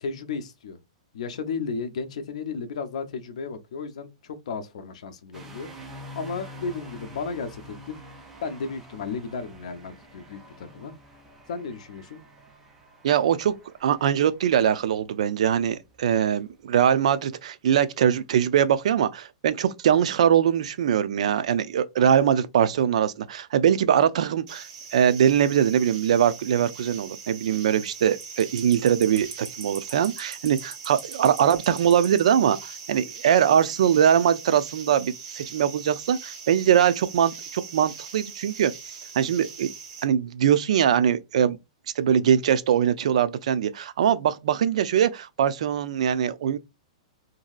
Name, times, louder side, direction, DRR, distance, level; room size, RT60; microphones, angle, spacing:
voice 1, 0.0-0.8 1.1-8.0 8.4-10.9 11.5-12.2, left 5 dB, 65° left, 0.7 m, -34 dB
sound 1, 5.3-17.1, left 1 dB, 10° right, 0.5 m, -47 dB
voice 2, 13.0-13.5 13.8-24.6 24.9-38.7 39.2-39.7 40.0-41.6 42.0-46.6, right 9 dB, 65° right, 0.4 m, -22 dB
sound 2, 24.5-40.0, right 6 dB, 35° right, 0.9 m, -41 dB
2.9 x 2.7 x 2.3 m
hypercardioid pair, 165°, 4 cm